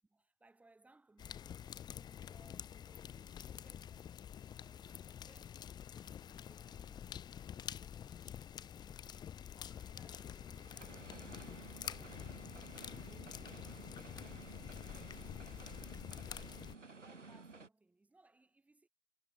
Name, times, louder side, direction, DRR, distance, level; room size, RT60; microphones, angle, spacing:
voice 1, 0.0-5.0 5.2-5.7 6.0-7.1 7.6-9.3 9.8-12.1 12.6-16.2 17.0-18.9, right 2 dB, 5° right, 6.5 m, -69 dB
sound 1, 1.2-16.8, left 9 dB, 10° left, 1.9 m, -48 dB
sound 2, 8.4-17.7, right 4 dB, 80° right, 3.0 m, -55 dB
figure-of-eight pair, 130°, 36 cm